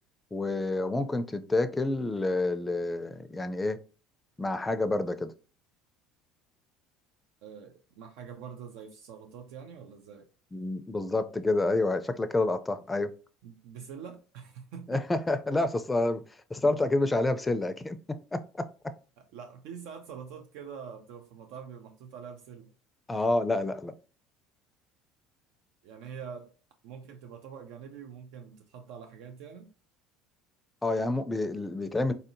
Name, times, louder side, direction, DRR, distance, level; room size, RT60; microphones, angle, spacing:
voice 1, 0.3-3.8 4.4-5.3 10.5-13.1 14.9-16.2 16.5-18.0 18.3-18.7 23.1-23.9 30.8-32.1, left 2 dB, 15° left, 0.4 m, -28 dB
voice 2, 7.4-10.3 13.4-15.1 19.2-22.7 23.1-23.2 25.8-26.5 26.8-29.7, right 7 dB, 75° right, 0.4 m, -45 dB
3.9 x 2.7 x 2.5 m
supercardioid pair, 100°, 0 cm